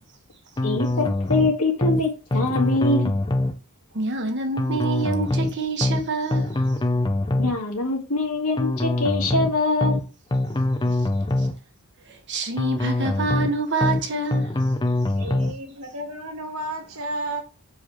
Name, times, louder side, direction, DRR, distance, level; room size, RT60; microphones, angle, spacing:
voice 1, 0.6-3.1 7.4-10.0, left 2 dB, 90° left, 2.1 m, -24 dB
sound 1, 0.6-1.5 1.8-2.0 2.3-3.5 4.6-5.5 5.8-6.0 6.3-7.5 8.6-9.5 9.8-10.0 10.3-11.5 12.6-13.5 13.8-14.0 14.3-15.5, left 2 dB, 20° left, 0.6 m, -23 dB
voice 2, 3.9-6.5 10.9-11.0 11.4-11.5 12.1-14.5, right 3 dB, 50° right, 1.4 m, -27 dB
voice 3, 15.2-17.4, right 1 dB, 75° right, 1.6 m, -32 dB
6.8 x 4.7 x 4.5 m
head